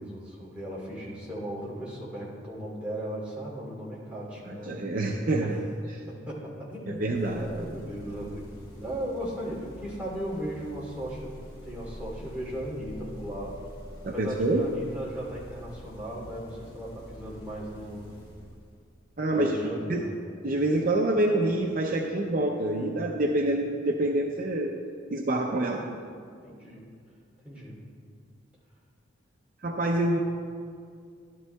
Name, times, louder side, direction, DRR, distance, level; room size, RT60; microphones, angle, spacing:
voice 1, 0.0-4.8 5.4-5.7 6.1-8.5 8.8-13.6 14.1-18.1 19.3-20.1 23.5-23.9 26.4-26.9 27.4-27.8, equal, 5° right, -6 dB, 2.8 m, -37 dB
voice 2, 4.5-5.6 6.9-7.5 14.0-14.7 19.2-19.6 19.9-20.1 20.4-24.8 25.1-26.0 29.6-30.2, right 1 dB, 45° right, 1 dB, 0.5 m, -26 dB
sound 1, 7.1-19.1, equal, 30° left, 2.3 m, -46 dB
14.0 x 12.0 x 2.3 m, 2.2 s
head